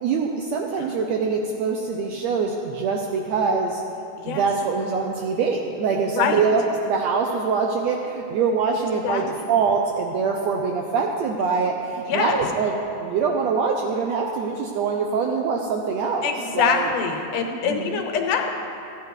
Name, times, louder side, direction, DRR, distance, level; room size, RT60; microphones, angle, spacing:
voice 1, 0.0-3.8 4.2-12.7 13.0-16.9 17.6-18.0, right 5 dB, 80° right, 1 dB, 1.6 m, -24 dB
voice 2, 12.0-12.4 16.2-18.5, left 6 dB, 80° left, 4 dB, 2.4 m, -24 dB
14.0 x 9.3 x 4.8 m, 2.7 s
omnidirectional pair, 3.7 m